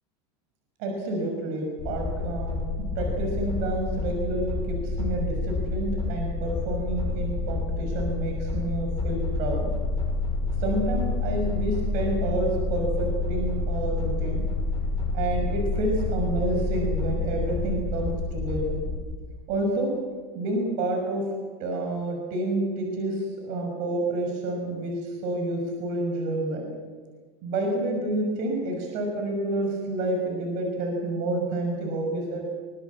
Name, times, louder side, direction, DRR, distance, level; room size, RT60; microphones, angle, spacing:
voice 1, 0.8-9.7 10.6-14.5 15.1-18.9 19.5-20.0 20.3-21.3 21.6-26.7 27.4-32.4, right 2 dB, 60° right, 2 dB, 6.1 m, -29 dB
sound 1, 1.8-19.0, left 3 dB, 25° left, 7.2 m, -28 dB
23.0 x 20.5 x 7.4 m, 1.4 s
supercardioid pair, 140°, 15 cm